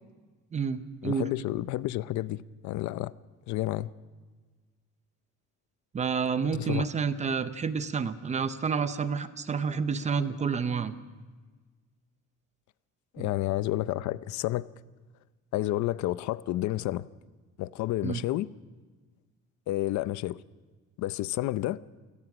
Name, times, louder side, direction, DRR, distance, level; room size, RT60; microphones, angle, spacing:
voice 1, 0.5-1.3 5.9-10.9 13.2-13.3 18.0-18.2, right 5 dB, 25° right, 0.7 m, -29 dB
voice 2, 1.0-3.1 3.5-3.9 6.5-6.9 13.1-14.7 15.5-17.1 17.6-18.5 19.7-20.4 21.0-21.8, left 16 dB, 65° left, 0.6 m, -30 dB
29.0 x 17.0 x 6.1 m
cardioid pair, 175°, 30 cm